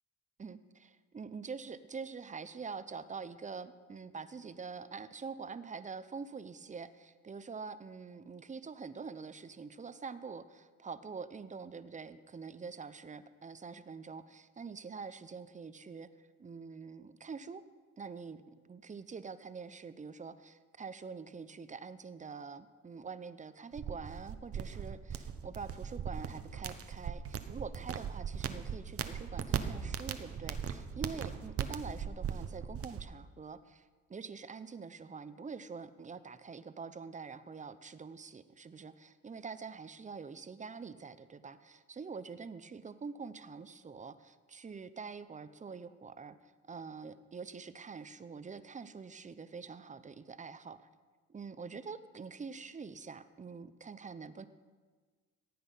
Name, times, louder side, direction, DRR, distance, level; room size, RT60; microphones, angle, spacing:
voice 1, 0.4-17.6 18.0-33.8 34.1-50.9 51.3-54.5, right 5 dB, 25° right, 13 dB, 0.7 m, -45 dB
sound 1, 23.8-33.0, right 8 dB, 50° right, 1.0 m, -38 dB
16.0 x 8.6 x 5.6 m, 1.4 s
cardioid pair, 90°, 30 cm